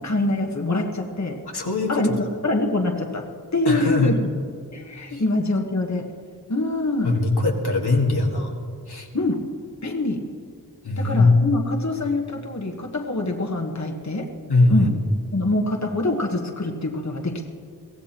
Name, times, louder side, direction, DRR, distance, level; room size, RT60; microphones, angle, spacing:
voice 1, 0.0-1.4 1.9-3.2 3.5-4.3 4.7-6.1 6.5-7.1 9.1-9.4 9.8-10.2 11.0-14.3 14.7-14.9 15.3-17.5, left 2 dB, 45° left, 2 dB, 1.3 m, -24 dB
voice 2, 1.5-2.2 3.7-4.2 5.1-5.2 7.0-8.5 8.9-9.1 10.8-11.4 14.5-15.0, left 2 dB, 80° left, 0 dB, 1.7 m, -21 dB
23.0 x 16.0 x 3.0 m, 2.2 s
wide cardioid pair, 55°, 38 cm